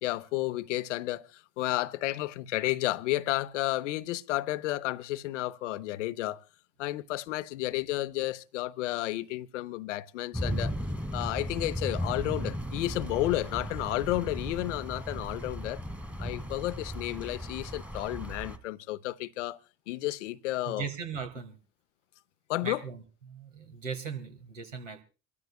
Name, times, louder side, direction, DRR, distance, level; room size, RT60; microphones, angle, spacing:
voice 1, 0.0-6.4 6.8-10.7 11.1-15.8 16.2-19.6 19.9-20.8 22.5-22.8, left 16 dB, 75° left, 0.7 m, -32 dB
sound 1, 10.3-18.6, equal, 5° right, 1.4 m, -36 dB
voice 2, 20.7-21.6 22.6-25.0, right 6 dB, 90° right, 1.9 m, -38 dB
27.5 x 13.5 x 2.3 m
hypercardioid pair, 60°, 36 cm